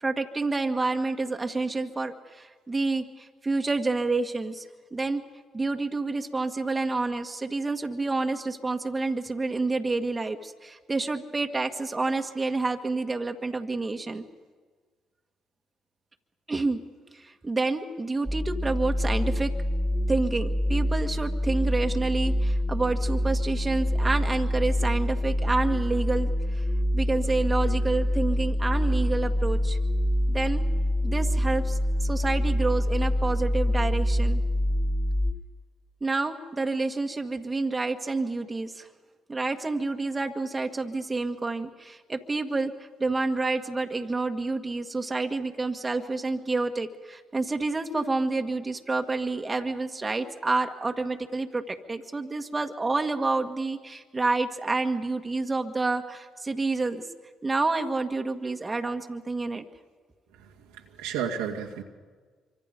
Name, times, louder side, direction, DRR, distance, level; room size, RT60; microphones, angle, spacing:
voice 1, 0.0-5.2 5.5-14.2 16.5-16.8 17.1-19.5 20.1-26.6 26.9-29.8 30.3-30.6 31.0-34.4 36.0-38.9 39.3-57.0 57.4-59.7, right 3 dB, 25° right, 5 dB, 1.8 m, -28 dB
sound 1, 18.3-35.3, equal, 5° right, 2.6 m, -26 dB
voice 2, 60.4-61.8, right 8 dB, 85° right, 0 dB, 2.3 m, -33 dB
26.5 x 25.0 x 5.3 m, 1.5 s
hypercardioid pair, 50°, 0 cm